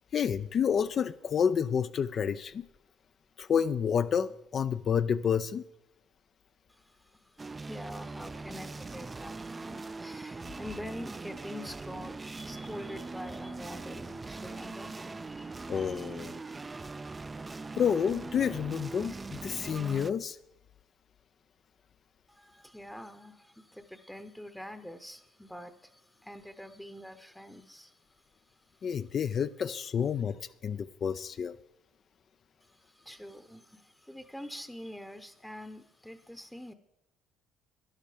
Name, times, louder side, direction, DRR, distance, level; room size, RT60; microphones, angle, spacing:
voice 1, 0.1-2.6 3.4-5.6 15.7-16.4 17.8-20.4 28.8-31.6, left 7 dB, 50° left, 11 dB, 0.4 m, -29 dB
voice 2, 6.7-16.2 22.3-28.9 32.6-36.7, left 1 dB, 5° left, 9 dB, 0.8 m, -46 dB
sound 1, 7.4-20.1, right 3 dB, 25° right, 0.4 m, -41 dB
12.0 x 10.5 x 5.0 m, 0.89 s
cardioid pair, 90°, 0 cm